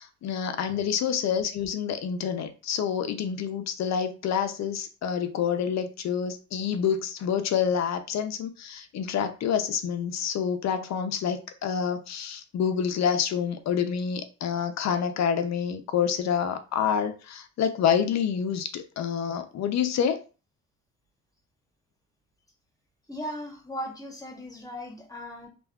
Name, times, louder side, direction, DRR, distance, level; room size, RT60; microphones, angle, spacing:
voice 1, 0.0-20.2, left 7 dB, 65° left, 0.6 m, -27 dB
voice 2, 23.1-25.5, equal, 10° left, 1.0 m, -37 dB
3.4 x 2.4 x 2.3 m
cardioid pair, 90°, 30 cm